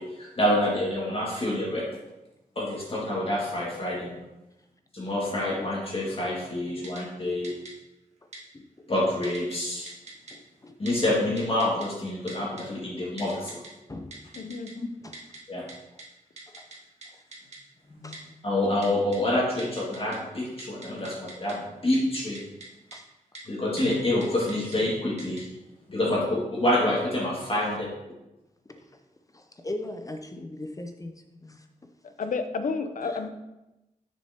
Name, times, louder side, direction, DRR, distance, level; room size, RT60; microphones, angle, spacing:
voice 1, 0.0-1.8 2.6-4.2 4.9-7.5 8.9-9.9 10.8-13.6 15.5-15.6 17.9-18.1 18.4-22.4 23.5-25.5 25.9-27.9, left 1 dB, 40° left, -5 dB, 1.9 m, -27 dB
Typing, 6.8-7.0 7.4-7.7 8.3-8.4 9.2-9.6 9.9-10.3 10.9-11.0 11.4-11.9 12.3-12.6 13.2-13.7 14.1-14.7 15.1-15.4 15.7-15.8 16.0-16.1 16.4-16.8 17.0-17.1 17.3-17.6 18.1-18.2 18.8-19.2 19.6-20.2 20.5-21.5 21.9-22.7 22.9-23.0 23.3-23.4 23.8-23.9 24.2-24.8 25.2-25.4, right 2 dB, 50° right, 1.6 m, -43 dB
voice 2, 8.5-8.9 10.3-10.8 13.9-14.2 14.7-15.2 16.5-16.7 17.1-17.2 18.0-18.2 22.9-23.1 28.7-28.8 29.3-31.1 31.4-31.7 33.0-33.2, left 1 dB, 25° left, 6 dB, 0.5 m, -40 dB
voice 3, 14.4-14.7 26.1-26.2 32.2-33.3, left 4 dB, 65° left, 8 dB, 0.6 m, -30 dB
6.8 x 6.1 x 2.9 m, 0.96 s
wide cardioid pair, 110°, 14 cm